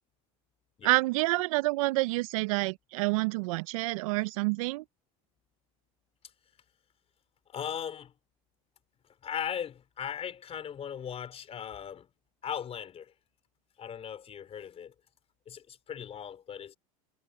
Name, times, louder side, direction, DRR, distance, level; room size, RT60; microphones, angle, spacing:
voice 1, 0.8-4.8, right 22 dB, 75° right, 0.6 m, -28 dB
voice 2, 7.5-8.1 9.2-12.1 12.4-13.1 13.8-14.9 15.5-16.7, left 8 dB, 35° left, 4.2 m, -38 dB
hypercardioid pair, 95°, 18 cm